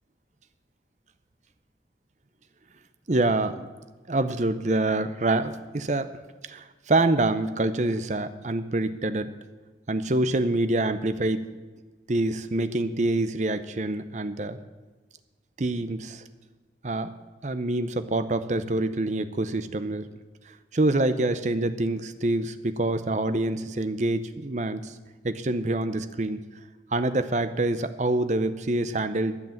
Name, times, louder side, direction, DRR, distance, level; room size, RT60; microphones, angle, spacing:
voice 1, 3.1-3.7 4.1-6.1 6.5-9.3 9.9-11.5 12.1-14.6 15.6-16.2 16.8-17.1 17.4-20.1 20.7-24.9 25.2-26.4 26.9-29.4, right 2 dB, 40° right, 11 dB, 0.7 m, -26 dB
12.0 x 8.1 x 7.2 m, 1.3 s
head